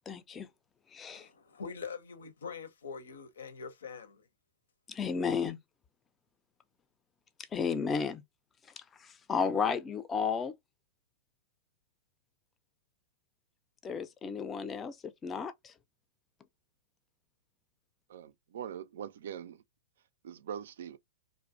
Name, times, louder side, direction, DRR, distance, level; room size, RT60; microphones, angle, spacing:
voice 1, 0.1-0.5 0.9-1.3 4.9-5.6 7.5-8.2 9.0-10.5 13.8-15.0 15.2-15.7, left 6 dB, 20° left, 0.4 m, -33 dB
voice 2, 1.1-4.2, left 5 dB, 80° left, 0.6 m, -44 dB
voice 3, 18.1-19.6 20.2-21.0, right 9 dB, 70° right, 0.3 m, -42 dB
2.5 x 2.1 x 2.6 m
hypercardioid pair, 115°, 0 cm